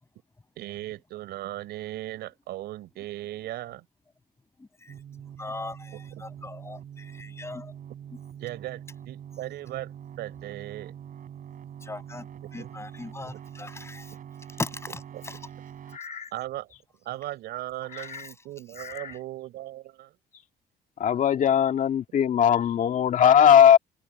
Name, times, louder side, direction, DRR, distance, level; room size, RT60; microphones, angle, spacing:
voice 1, 0.6-3.9 8.4-10.9 12.6-12.7 15.1-15.2 16.3-16.7 17.0-20.2, right 15 dB, 75° right, 5.2 m, -37 dB
voice 2, 4.6-4.9 5.4-7.8 11.8-14.1 14.6-15.4 18.0-18.3 18.8-18.9, left 3 dB, 15° left, 6.2 m, -39 dB
sound 1, 4.9-16.0, right 9 dB, 55° right, 6.6 m, -44 dB
voice 3, 15.9-16.3 17.9-18.2 18.8-19.1 21.0-23.8, left 9 dB, 50° left, 2.0 m, -20 dB
cardioid pair, 110°, 17 cm